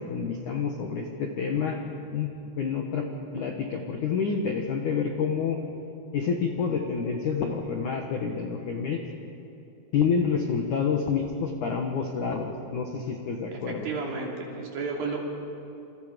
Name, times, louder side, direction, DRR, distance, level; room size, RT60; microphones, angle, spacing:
voice 1, 0.0-1.8 2.1-2.3 2.6-3.1 3.3-5.6 6.1-9.0 9.9-13.9, left 6 dB, 70° left, 2 dB, 1.9 m, -28 dB
voice 2, 13.5-15.2, right 4 dB, 50° right, -1 dB, 4.3 m, -32 dB
29.0 x 27.5 x 5.3 m, 2.8 s
omnidirectional pair, 5.7 m